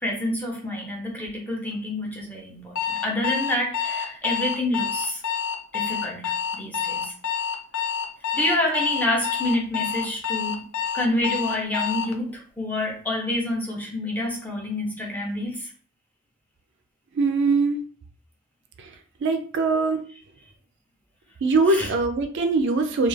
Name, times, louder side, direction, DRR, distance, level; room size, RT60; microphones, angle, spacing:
voice 1, 0.0-5.2 5.7-7.1 8.3-10.7 10.9-15.7 21.7-21.9, left 1 dB, 10° left, -1 dB, 0.5 m, -28 dB
Alarm, 2.8-12.2, left 7 dB, 75° left, 0.4 m, -28 dB
voice 2, 17.2-17.8 19.2-20.0 21.4-23.1, right 3 dB, 55° right, 6 dB, 0.3 m, -22 dB
2.3 x 2.3 x 3.1 m, 0.43 s
head